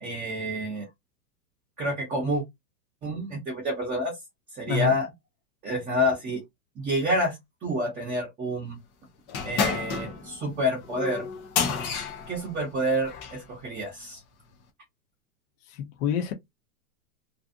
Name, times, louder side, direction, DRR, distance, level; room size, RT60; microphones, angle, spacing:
voice 1, 0.0-0.8 1.8-2.4 3.0-4.2 4.5-5.1 5.6-6.4 6.8-7.4 7.6-8.8 9.4-11.2 12.3-14.2, equal, 20° right, 0.9 m, -28 dB
sound 1, 9.3-13.4, left 6 dB, 20° left, 0.4 m, -30 dB
voice 2, 15.7-16.3, left 9 dB, 45° left, 0.7 m, -27 dB
2.6 x 2.3 x 2.5 m
hypercardioid pair, 140°, 44 cm